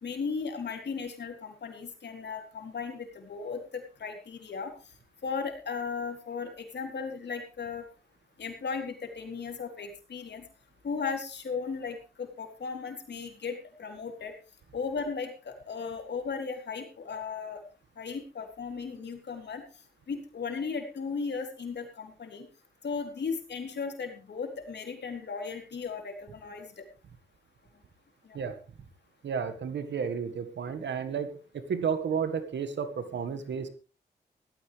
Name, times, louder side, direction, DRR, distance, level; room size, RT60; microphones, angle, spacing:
voice 1, 0.0-4.7 5.2-7.8 8.4-10.5 10.8-14.3 14.7-17.6 18.0-19.6 20.1-22.5 22.8-26.8 28.2-28.4, left 5 dB, 70° left, 4 dB, 3.6 m, -36 dB
voice 2, 29.2-33.7, right 6 dB, 80° right, 10 dB, 1.7 m, -32 dB
17.0 x 13.5 x 3.4 m, 0.34 s
cardioid pair, 50°, 18 cm